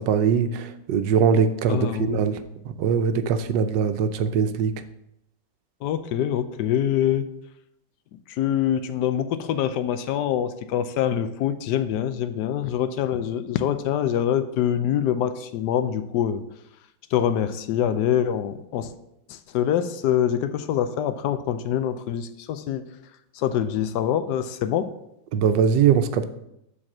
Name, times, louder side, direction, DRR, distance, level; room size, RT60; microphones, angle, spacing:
voice 1, 0.0-2.4 2.8-4.7 25.3-26.3, right 7 dB, 85° right, 10 dB, 1.3 m, -21 dB
voice 2, 1.7-2.2 5.8-7.3 8.3-16.4 17.1-18.9 19.3-22.8 23.3-24.9, left 10 dB, 75° left, 11 dB, 1.1 m, -25 dB
7.5 x 4.3 x 6.0 m, 0.81 s
omnidirectional pair, 1.9 m